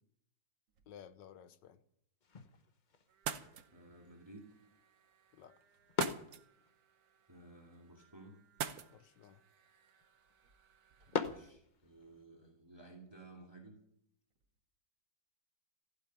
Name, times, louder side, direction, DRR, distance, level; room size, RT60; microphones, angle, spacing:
sound 1, 0.7-2.0 2.5-2.6 4.1-4.6 5.1-7.8 8.2-8.3 8.7-8.8 9.1-9.2 9.4-13.2 13.5-13.7 14.0-14.6, right 3 dB, 90° right, 2.6 m, -71 dB
voice 1, 0.9-1.8 5.3-5.6 8.9-9.4, left 9 dB, 80° left, 1.5 m, -56 dB
sound 2, 2.2-12.3, left 5 dB, 35° left, 0.7 m, -45 dB
sound 3, 3.1-11.5, right 8 dB, 60° right, 1.3 m, -48 dB
voice 2, 3.7-4.5 7.3-8.3 11.1-13.8, right 2 dB, 15° right, 2.4 m, -56 dB
15.5 x 7.9 x 10.0 m
omnidirectional pair, 1.9 m